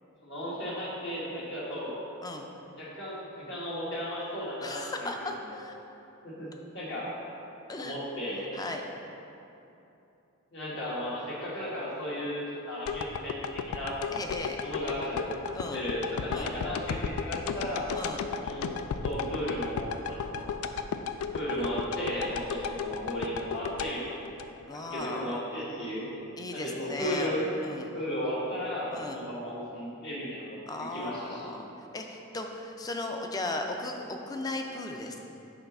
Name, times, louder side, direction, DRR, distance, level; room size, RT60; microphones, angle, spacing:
voice 1, 0.2-1.9 2.8-5.3 6.2-6.5 6.7-7.1 7.8-8.5 10.5-14.0 14.6-15.4 15.7-17.9 18.4-20.5 21.3-24.3 24.9-26.1 26.5-27.5 27.9-31.6, equal, 60° left, -6 dB, 1.5 m, -35 dB
voice 2, 4.6-5.7 7.7-8.0 8.5-8.8 14.1-14.6 15.5-15.8 16.3-16.5 17.9-18.2 24.7-25.3 26.4-27.9 28.9-29.2 30.7-31.7 31.9-35.2, left 2 dB, 20° left, 3 dB, 0.4 m, -36 dB
sound 1, 12.9-25.0 25.5-25.6, left 6 dB, 85° left, 0.3 m, -34 dB
5.7 x 3.9 x 5.4 m, 2.8 s
head